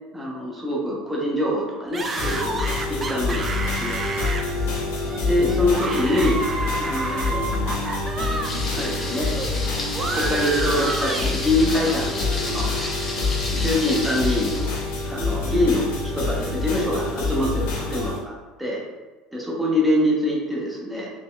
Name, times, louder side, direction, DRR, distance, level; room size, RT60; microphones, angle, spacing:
voice 1, 0.1-4.5 5.3-7.9 8.7-9.3 10.1-12.7 13.5-14.7 15.0-18.8 19.3-21.1, left 1 dB, 10° right, -4 dB, 1.0 m, -25 dB
sound 1, 1.9-8.5 8.8-12.0, right 3 dB, 25° right, 0.4 m, -30 dB
sound 2, 2.2-18.2, left 3 dB, 65° left, 0.8 m, -27 dB
Thunder, 8.4-15.0, left 2 dB, 20° left, 0.9 m, -32 dB
4.0 x 3.0 x 2.4 m, 1.2 s
figure-of-eight pair, 65°, 0 cm